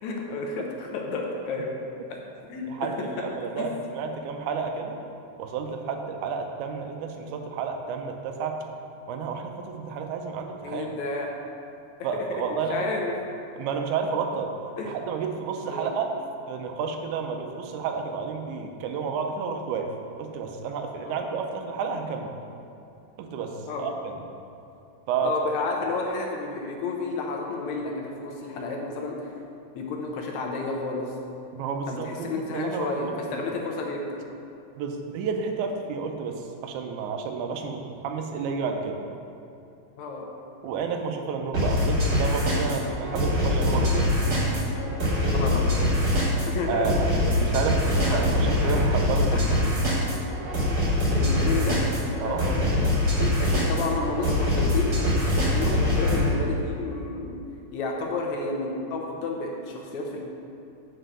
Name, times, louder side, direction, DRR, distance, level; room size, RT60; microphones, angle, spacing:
voice 1, 0.0-1.7 2.1-2.2 2.5-2.9 3.6-3.7 10.6-11.3 12.3-12.4 12.7-13.1 14.8-14.9 15.7-15.9 21.0-21.2 23.7-23.9 25.2-29.3 29.8-31.1 31.9-34.2 40.0-40.3 45.2-45.8 46.5-47.0 47.3-48.2 49.3-49.4 51.1-51.8 52.1-52.8 53.2-55.0 55.3-57.4 57.7-60.2, left 3 dB, 75° left, 0 dB, 2.0 m, -31 dB
voice 2, 2.7-5.0 5.4-8.6 9.1-10.9 12.0-12.9 13.5-14.5 14.8-16.1 16.5-19.9 20.2-22.4 23.2-24.1 25.1-25.3 31.5-33.4 34.8-39.0 40.6-44.2 46.7-49.7 52.2-52.5, right 5 dB, 80° right, 4 dB, 2.0 m, -31 dB
sound 1, 41.5-56.3, left 1 dB, 35° right, 1.9 m, -24 dB
6.2 x 4.4 x 6.6 m, 2.7 s
omnidirectional pair, 3.5 m